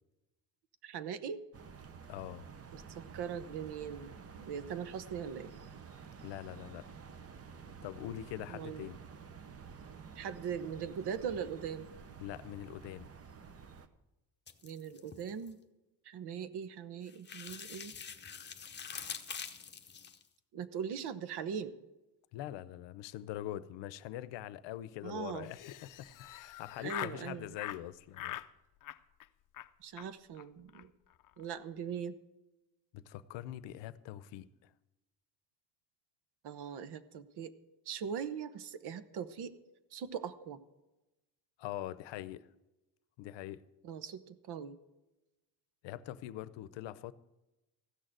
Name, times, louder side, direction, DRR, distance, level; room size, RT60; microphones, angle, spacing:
voice 1, 0.8-1.4 2.7-5.5 8.5-8.9 10.2-11.9 14.6-15.6 16.0-17.9 20.5-21.7 25.0-25.5 26.8-27.5 29.8-30.9 31.4-32.2 36.4-37.5 37.9-39.5 39.9-40.6 43.8-44.8, right 7 dB, 65° right, 1.0 m, -40 dB
sound 1, 1.5-13.9, right 6 dB, 35° right, 0.9 m, -51 dB
voice 2, 2.1-2.5 6.2-6.9 7.8-9.0 12.2-13.1 22.3-25.6 26.0-28.4 32.9-34.7 41.6-42.5 43.2-43.6 45.8-47.1, left 13 dB, 85° left, 0.7 m, -43 dB
sound 2, 14.5-15.5 17.1-20.2, left 6 dB, 25° left, 0.9 m, -45 dB
Laughter, 25.4-27.2 27.6-27.8 28.1-28.5 28.8-29.3 29.5-29.7 30.0-30.1 30.3-30.4 30.7-30.8 31.1-31.4, left 13 dB, 50° left, 0.6 m, -43 dB
15.0 x 6.5 x 9.1 m
cardioid pair, 135°, 43 cm